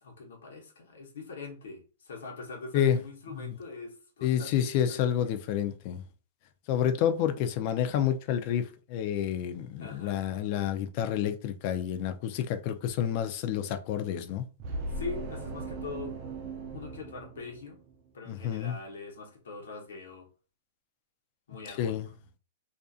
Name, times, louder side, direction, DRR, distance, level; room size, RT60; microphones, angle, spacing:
voice 1, 0.0-4.6 4.9-5.1 9.8-10.2 14.9-16.1 16.7-17.8 18.1-20.3 21.5-22.0, left 3 dB, 80° left, 1.0 m, -42 dB
voice 2, 4.2-6.0 6.7-14.4 18.3-18.8 21.8-22.1, left 9 dB, 45° left, 0.4 m, -29 dB
sound 1, 14.6-18.1, right 2 dB, 45° right, 0.5 m, -38 dB
2.5 x 2.4 x 2.4 m
hypercardioid pair, 130°, 0 cm